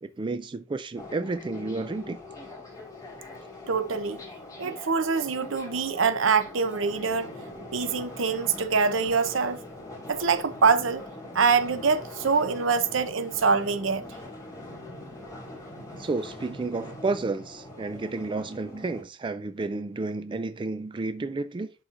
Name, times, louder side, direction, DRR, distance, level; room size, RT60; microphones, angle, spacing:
voice 1, 0.0-2.2 16.0-21.7, right 3 dB, 25° right, 0.4 m, -31 dB
sound 1, 1.0-19.0, left 2 dB, 20° left, 2.1 m, -42 dB
voice 2, 3.7-4.2 4.6-7.3 7.7-9.6 10.1-11.0 11.3-14.0, right 5 dB, 70° right, 0.7 m, -24 dB
11.0 x 4.1 x 2.5 m
head